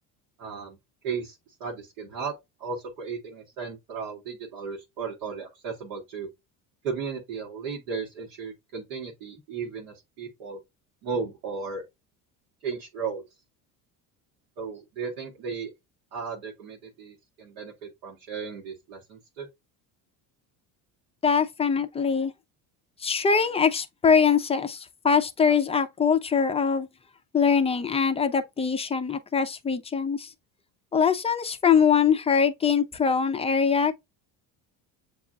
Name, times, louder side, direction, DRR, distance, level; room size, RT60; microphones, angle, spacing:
voice 1, 0.4-0.8 1.0-2.3 2.6-6.3 6.8-10.6 11.0-11.9 12.6-13.2 14.6-15.7 16.1-19.5, right 5 dB, 90° right, 1.1 m, -35 dB
voice 2, 21.2-22.3 23.0-26.9 27.3-30.3 30.9-34.0, left 6 dB, 15° left, 0.3 m, -23 dB
6.9 x 2.4 x 2.3 m
supercardioid pair, 90°, 43 cm